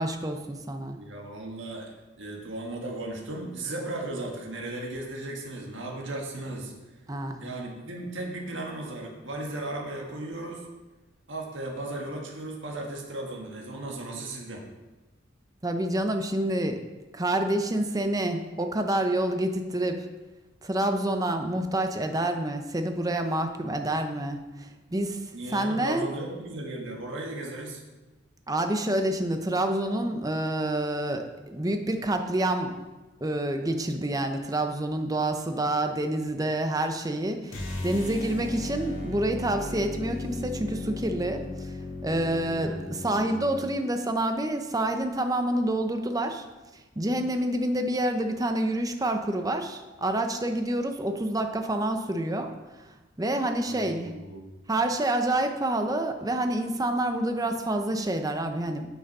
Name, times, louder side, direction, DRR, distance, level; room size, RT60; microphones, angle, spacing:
voice 1, 0.0-1.0 7.1-7.4 15.6-16.8 17.1-20.1 20.6-25.2 25.5-26.1 28.5-32.7 33.2-41.7 42.0-46.5 47.0-52.9 53.2-54.1 54.7-58.9, right 1 dB, 20° right, 6 dB, 0.7 m, -28 dB
voice 2, 1.0-1.9 2.2-6.7 7.4-10.6 11.3-14.6 25.3-27.8 42.6-43.2 53.7-54.4, right 2 dB, 65° right, -1 dB, 1.7 m, -36 dB
sound 1, 37.5-43.7, left 2 dB, 75° left, 1.7 m, -36 dB
8.8 x 6.3 x 5.4 m, 1.1 s
head